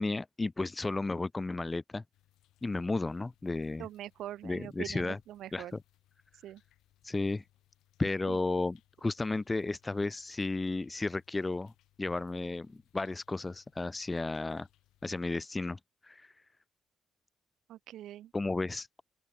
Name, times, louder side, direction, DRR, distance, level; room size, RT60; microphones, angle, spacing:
voice 1, 0.0-2.0 2.6-3.9 4.4-5.2 5.5-5.7 7.0-7.4 8.0-11.7 12.0-14.7 15.0-16.3 18.3-18.9, left 3 dB, 20° left, 0.3 m, -33 dB
sound 1, 2.1-15.3, left 15 dB, 90° left, 3.2 m, -70 dB
voice 2, 3.8-5.8 6.4-6.6 8.3-8.4 17.7-18.3, right 12 dB, 80° right, 0.5 m, -43 dB
open air
cardioid pair, 90°, 0 cm